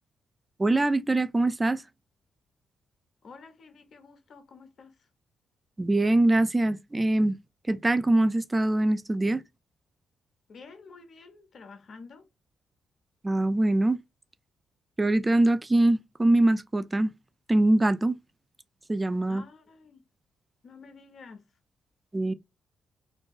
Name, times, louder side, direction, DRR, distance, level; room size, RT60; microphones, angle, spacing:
voice 1, 0.6-1.8 5.8-7.4 7.7-9.4 13.2-14.0 15.0-17.1 17.5-18.2 18.9-19.4 22.1-22.3, right 2 dB, 25° right, 0.3 m, -23 dB
voice 2, 3.2-5.1 10.5-12.3 19.3-20.0 20.6-21.5, left 4 dB, 55° left, 0.5 m, -49 dB
2.5 x 2.2 x 2.3 m
hypercardioid pair, 40°, 0 cm